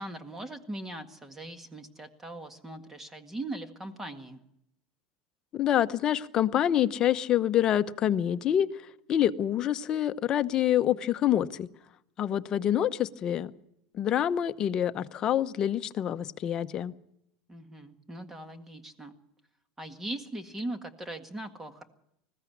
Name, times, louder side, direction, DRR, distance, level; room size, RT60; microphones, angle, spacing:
voice 1, 0.0-4.4 17.5-19.1 19.8-21.8, right 1 dB, 15° right, 8 dB, 1.8 m, -40 dB
voice 2, 5.5-8.7 9.1-11.7 12.2-13.5 13.9-16.9, left 11 dB, 35° left, 10 dB, 0.8 m, -26 dB
20.5 x 15.0 x 8.6 m, 0.78 s
supercardioid pair, 135°, 2 cm